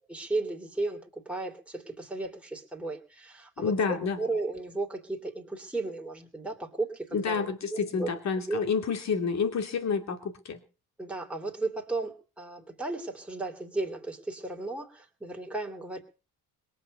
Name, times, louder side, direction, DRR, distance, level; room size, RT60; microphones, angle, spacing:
voice 1, 0.1-8.1 8.5-8.6 11.0-16.0, right 2 dB, 5° right, 0 dB, 3.2 m, -35 dB
voice 2, 3.6-4.2 7.1-10.6, left 5 dB, 45° left, 7 dB, 2.6 m, -29 dB
22.0 x 7.4 x 6.7 m, 0.35 s
cardioid pair, 155°, 36 cm